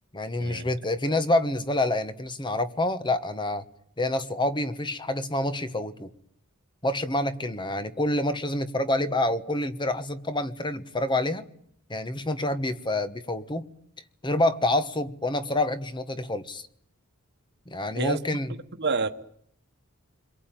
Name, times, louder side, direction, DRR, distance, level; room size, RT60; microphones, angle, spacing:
voice 1, 0.1-3.6 4.0-6.1 6.8-11.4 11.9-13.7 14.2-16.6 17.7-18.5, left 1 dB, 20° left, 1.3 m, -27 dB
voice 2, 17.9-18.4 18.8-19.1, right 4 dB, 50° right, 1.5 m, -28 dB
29.0 x 22.5 x 9.1 m
head